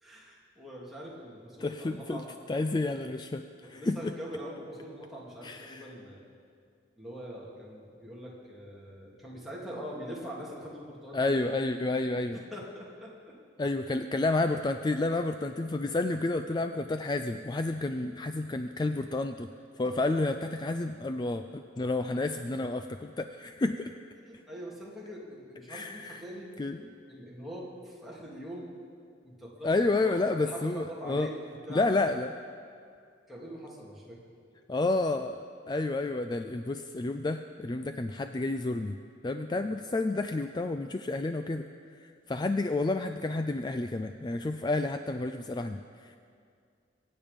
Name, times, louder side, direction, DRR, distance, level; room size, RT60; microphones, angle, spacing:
voice 1, 0.0-2.3 3.6-6.2 7.0-11.4 12.5-13.3 24.2-26.5 27.1-28.7 29.2-31.9 33.3-34.2 39.5-39.7, equal, ahead, -6 dB, 2.6 m, -43 dB
voice 2, 1.6-2.2 2.5-4.1 5.4-5.9 11.1-12.4 13.6-19.5 19.8-23.9 25.7-26.2 26.6-26.8 29.6-31.3 31.7-32.3 34.7-35.4 35.7-39.0 39.2-41.6 42.0-46.2, left 2 dB, 20° left, 8 dB, 0.3 m, -30 dB
23.5 x 8.8 x 5.2 m, 2.3 s
head